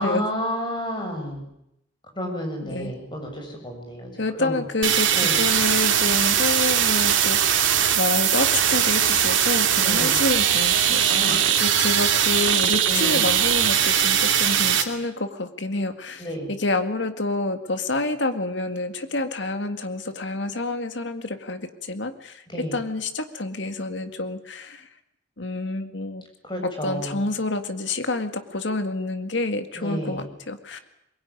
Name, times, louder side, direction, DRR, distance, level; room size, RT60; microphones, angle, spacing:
voice 1, 0.0-1.4 2.2-4.1 4.4-4.6 5.1-5.4 9.8-10.2 11.1-11.5 12.3-12.6 12.9-13.2 16.2-16.5 22.5-22.8 26.4-27.2 29.7-30.3, equal, 25° left, 2 dB, 7.2 m, -31 dB
voice 2, 2.6-2.9 4.2-24.9 25.4-26.2 26.6-30.8, left 2 dB, 70° left, 8 dB, 2.0 m, -28 dB
sound 1, 4.8-14.8, right 9 dB, 90° right, 2.8 m, -20 dB
22.5 x 21.5 x 9.7 m, 0.81 s
head